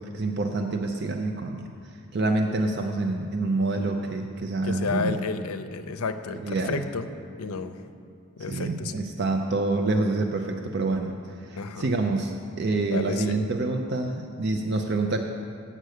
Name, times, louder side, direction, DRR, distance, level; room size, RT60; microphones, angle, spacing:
voice 1, 0.0-1.7 2.1-5.1 6.4-6.8 8.5-11.1 11.4-15.2, right 2 dB, 50° right, 4 dB, 0.5 m, -27 dB
voice 2, 4.6-7.1 7.4-7.8 8.4-8.9 11.6-11.9 12.8-13.4, left 4 dB, 85° left, 9 dB, 0.5 m, -31 dB
7.7 x 7.4 x 6.5 m, 2.3 s
head